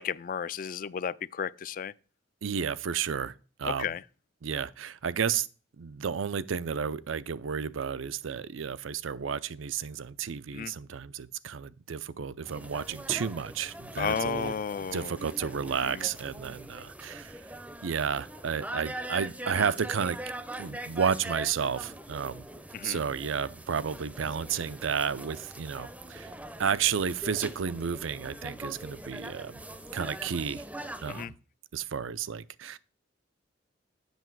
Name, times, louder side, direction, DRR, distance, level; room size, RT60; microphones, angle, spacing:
voice 1, 0.0-1.9 3.6-4.0 10.5-10.7 14.0-15.1 15.8-16.1 22.7-23.0 31.1-31.3, left 7 dB, 45° left, 0.3 m, -33 dB
voice 2, 2.4-3.3 3.6-3.9 4.4-5.5 5.8-14.5 14.9-17.4 17.8-20.2 20.6-22.5 22.8-26.3 26.6-29.6 29.9-30.6 31.0-31.3 31.7-32.8, right 7 dB, 80° right, 0.5 m, -32 dB
sound 1, 12.4-31.3, right 1 dB, 5° right, 0.5 m, -42 dB
8.1 x 6.4 x 4.6 m
head